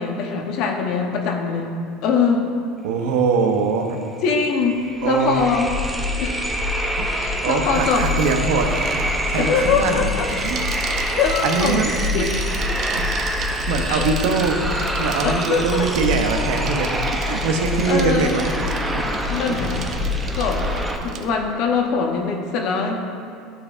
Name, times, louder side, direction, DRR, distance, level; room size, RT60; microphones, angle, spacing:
voice 1, 0.0-1.7 2.0-2.5 4.2-5.7 6.2-6.4 7.1-8.1 9.4-10.3 10.6-11.8 12.1-12.5 13.9-14.0 15.2-15.9 17.8-18.3 19.3-19.8 20.4-20.7 21.0-23.0, left 5 dB, 60° left, 2 dB, 0.9 m, -22 dB
voice 2, 2.8-4.0 5.0-5.4 7.0-7.1 7.4-10.1 10.4-10.6 10.9-11.2 11.4-11.9 12.1-12.3 12.9-18.6 18.9-19.6 21.0-21.1, right 5 dB, 75° right, 3 dB, 0.8 m, -23 dB
sound 1, 4.0-4.1 4.3-21.0, left 1 dB, 10° right, 0.7 m, -25 dB
Bicycle, 7.7-21.3, right 7 dB, 50° right, 0.5 m, -36 dB
11.5 x 4.3 x 2.5 m, 2.5 s
supercardioid pair, 100°, 0 cm